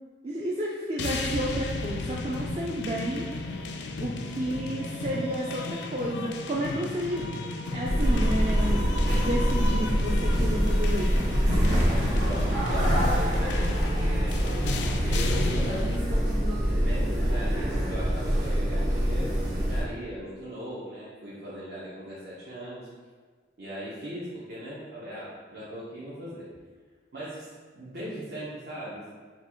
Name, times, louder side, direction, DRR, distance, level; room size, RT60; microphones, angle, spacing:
voice 1, 0.2-3.3 4.0-7.3 7.7-8.8 9.1-11.3, right 1 dB, 35° right, -3 dB, 0.4 m, -31 dB
sound 1, 1.0-16.0, left 3 dB, 75° left, 0.4 m, -34 dB
sound 2, 7.8-19.8, equal, 85° right, 1.3 m, -25 dB
voice 2, 11.8-14.5 15.0-15.7 16.8-22.9 23.6-26.5 27.1-29.1, equal, 65° right, -9 dB, 1.0 m, -38 dB
4.4 x 2.4 x 4.4 m, 1.5 s
head